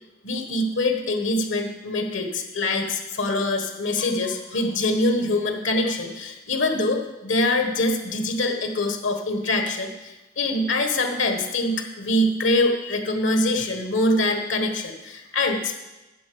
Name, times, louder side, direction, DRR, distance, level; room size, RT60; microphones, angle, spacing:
voice 1, 0.2-15.7, left 2 dB, 90° left, 4 dB, 1.4 m, -24 dB
9.2 x 7.7 x 6.9 m, 1.1 s
head